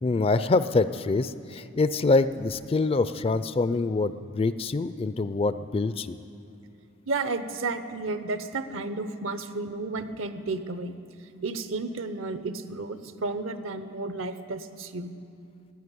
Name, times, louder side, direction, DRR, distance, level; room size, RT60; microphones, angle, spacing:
voice 1, 0.0-6.2, left 3 dB, 30° left, 13 dB, 0.4 m, -25 dB
voice 2, 7.1-11.0 11.4-15.1, right 3 dB, 75° right, 11 dB, 0.9 m, -32 dB
14.5 x 9.2 x 9.8 m, 2.5 s
head